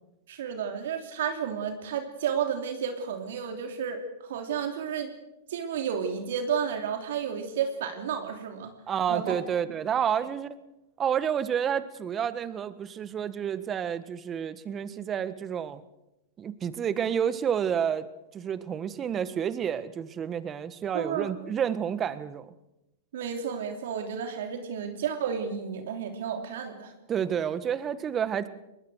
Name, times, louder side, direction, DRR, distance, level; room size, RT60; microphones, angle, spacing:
voice 1, 0.3-5.1 5.5-8.7 9.1-9.4 20.9-21.3 23.1-26.9, right 7 dB, 70° right, 5 dB, 3.1 m, -32 dB
voice 2, 8.9-10.6 11.0-15.8 16.4-18.1 18.3-22.5 27.1-28.5, right 8 dB, 25° right, 14 dB, 1.5 m, -29 dB
22.5 x 20.0 x 6.4 m, 0.92 s
hypercardioid pair, 115°, 0 cm